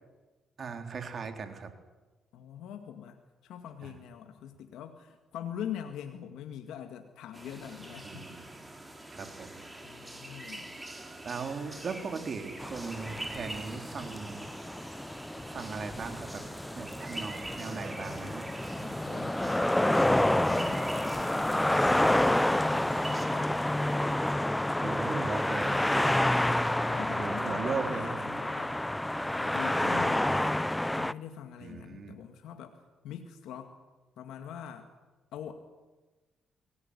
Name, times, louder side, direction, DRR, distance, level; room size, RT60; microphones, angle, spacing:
voice 1, 0.6-1.7 3.8-4.0 8.0-8.5 9.1-9.5 11.2-14.5 15.4-16.4 16.7-18.5 24.8-25.9 27.2-28.2 31.6-32.2, right 5 dB, 50° right, 6 dB, 3.8 m, -38 dB
voice 2, 2.3-8.4 9.8-10.7 18.6-22.2 22.7-23.7 26.0-29.1 29.4-30.6 30.9-33.8 34.2-34.9 35.3-35.5, left 9 dB, 85° left, 6 dB, 1.9 m, -44 dB
sound 1, 7.3-23.3, right 1 dB, 15° right, 4.7 m, -44 dB
sound 2, 12.6-31.1, left 1 dB, 10° left, 0.7 m, -29 dB
23.0 x 18.5 x 9.8 m, 1.2 s
cardioid pair, 80°, 0 cm